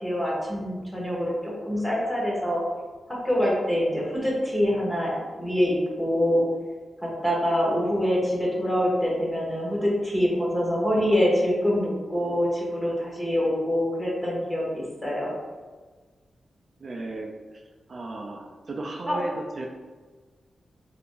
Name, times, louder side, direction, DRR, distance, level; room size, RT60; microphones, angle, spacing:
voice 1, 0.0-2.6 3.2-6.4 7.0-15.3 19.1-19.2, equal, 10° left, -4 dB, 0.8 m, -25 dB
voice 2, 16.8-17.3 17.9-19.7, right 2 dB, 40° right, 0 dB, 0.3 m, -34 dB
2.9 x 2.4 x 3.7 m, 1.4 s
wide cardioid pair, 160°, 0 cm